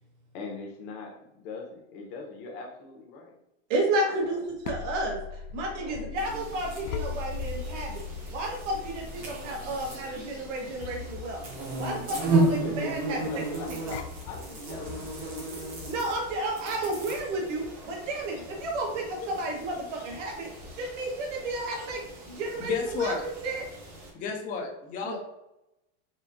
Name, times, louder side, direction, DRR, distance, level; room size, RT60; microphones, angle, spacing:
voice 1, 0.3-3.3 4.0-4.5 5.7-6.3 11.9-12.0 12.6-13.7 14.2-15.9, left 3 dB, 55° left, 1 dB, 1.0 m, -41 dB
voice 2, 3.7-5.2 5.5-8.0 8.3-11.4 11.8-13.2 13.7-13.9 15.9-22.7 23.0-23.1 23.4-23.6 25.0-25.2, right 2 dB, 80° right, 0 dB, 1.3 m, -32 dB
sound 1, 4.3-16.1, left 6 dB, 80° left, 0.5 m, -40 dB
Bees and bumblebees are buzzing arround microphon, 6.2-24.1, right 2 dB, 25° right, 0.7 m, -35 dB
voice 3, 22.6-23.3 24.1-25.2, left 5 dB, 25° left, 2 dB, 0.4 m, -31 dB
4.3 x 2.7 x 2.6 m, 0.88 s
supercardioid pair, 165°, 36 cm